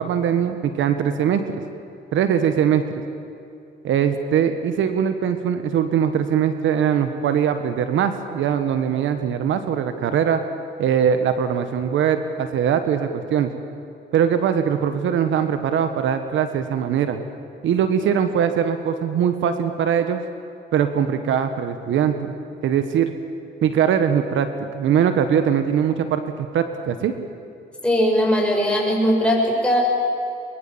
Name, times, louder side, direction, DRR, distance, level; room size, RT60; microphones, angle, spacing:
voice 1, 0.0-1.6 2.1-3.0 3.8-10.4 10.8-13.5 14.1-17.2 17.6-20.2 20.7-22.3 22.6-23.1 23.6-27.1, right 8 dB, 75° right, 8 dB, 1.4 m, -21 dB
voice 2, 27.8-29.8, equal, 5° left, -2 dB, 7.3 m, -19 dB
23.0 x 23.0 x 7.4 m, 2.6 s
cardioid pair, 90°, 20 cm